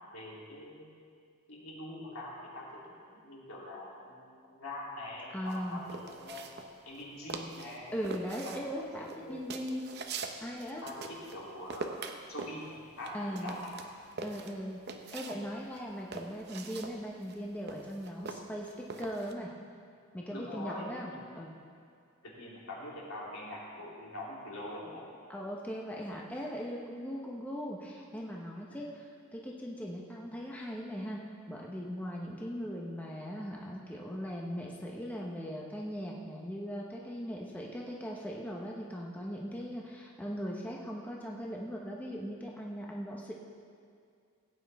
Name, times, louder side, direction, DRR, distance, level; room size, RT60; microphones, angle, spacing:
voice 1, 0.1-0.9 1.5-6.5 6.8-7.9 8.4-9.4 10.8-11.9 12.3-13.7 20.3-21.2 22.2-25.1, left 1 dB, 80° left, -5 dB, 3.0 m, -44 dB
voice 2, 5.3-5.8 7.9-9.8 10.4-10.8 13.1-13.5 14.2-14.8 15.1-19.5 20.1-21.5 25.3-31.2 31.5-43.3, equal, 5° left, -3 dB, 0.8 m, -39 dB
sound 1, 5.5-7.0 7.3-7.8 8.0-11.4 11.7-15.4 15.7-19.3, right 4 dB, 50° right, 0.7 m, -43 dB
16.5 x 8.9 x 3.5 m, 2.3 s
head